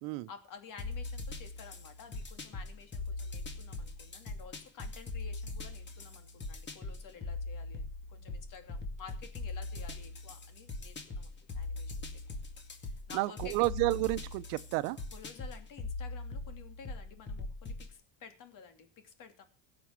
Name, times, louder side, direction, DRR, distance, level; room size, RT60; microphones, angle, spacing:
voice 1, 0.3-12.0 12.7-13.6 15.1-19.5, left 6 dB, 40° left, 2.9 m, -52 dB
sound 1, 0.8-17.9, left 3 dB, 25° left, 2.2 m, -41 dB
voice 2, 13.1-15.0, right 20 dB, 80° right, 1.0 m, -31 dB
16.5 x 6.4 x 7.4 m
cardioid pair, 160°, 47 cm